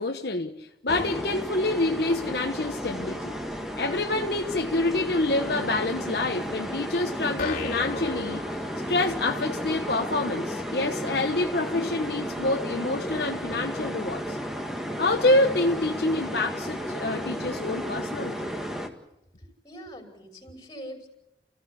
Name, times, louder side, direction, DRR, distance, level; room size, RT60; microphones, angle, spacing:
voice 1, 0.0-3.3 3.8-8.4 8.9-14.4 15.0-18.3, left 2 dB, 65° left, 3 dB, 1.2 m, -27 dB
sound 1, 0.9-18.9, equal, ahead, 1.9 m, -33 dB
sound 2, 7.4-9.3, left 4 dB, 50° left, 2.6 m, -36 dB
voice 2, 19.4-21.2, equal, 20° left, 2 dB, 5.3 m, -43 dB
29.5 x 15.5 x 8.5 m, 0.89 s
head